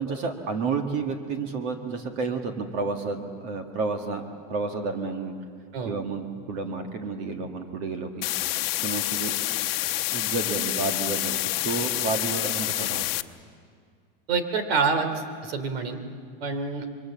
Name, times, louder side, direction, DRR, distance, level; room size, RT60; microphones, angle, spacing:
voice 1, 0.0-4.2 4.5-5.4 5.9-8.3 8.8-9.3 10.1-13.1, right 4 dB, 45° right, 5 dB, 1.8 m, -30 dB
sound 1, 8.2-13.2, left 16 dB, 80° left, 0.9 m, -28 dB
voice 2, 14.3-15.1 15.4-16.0 16.4-16.9, right 5 dB, 90° right, 9 dB, 2.9 m, -26 dB
27.0 x 23.5 x 7.5 m, 2.1 s
supercardioid pair, 175°, 29 cm